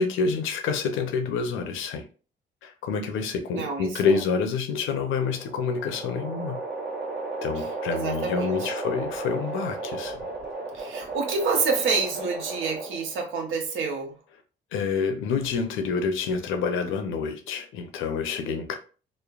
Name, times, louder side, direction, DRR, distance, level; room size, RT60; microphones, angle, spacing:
voice 1, 0.0-2.1 2.6-6.6 7.4-10.1 14.7-18.8, left 5 dB, 85° left, 0.6 m, -27 dB
voice 2, 3.5-3.9 7.9-8.6 10.7-14.1, right 4 dB, 80° right, 0.7 m, -27 dB
sound 1, 5.1-13.2, right 3 dB, 60° right, 1.2 m, -34 dB
3.1 x 2.0 x 2.3 m
cardioid pair, 90°, 20 cm